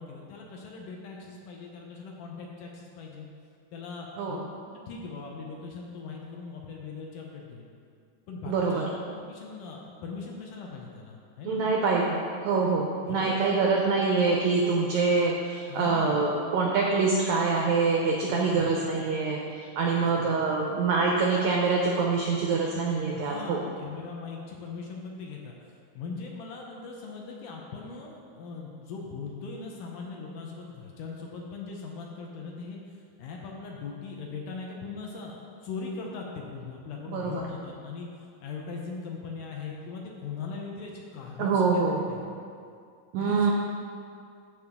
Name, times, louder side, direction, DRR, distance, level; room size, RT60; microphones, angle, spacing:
voice 1, 0.0-3.3 3.7-4.4 4.9-7.7 8.3-11.6 12.7-13.7 15.7-16.2 18.3-18.7 19.8-20.7 23.1-25.6 26.0-32.8 33.2-38.1 38.4-42.3 43.2-43.5, left 4 dB, 75° left, -1 dB, 2.1 m, -40 dB
voice 2, 8.5-8.9 11.4-23.7 37.0-37.4 41.4-42.0 43.1-43.5, right 4 dB, 85° right, -1 dB, 1.6 m, -25 dB
14.0 x 4.9 x 3.6 m, 2.3 s
omnidirectional pair, 4.2 m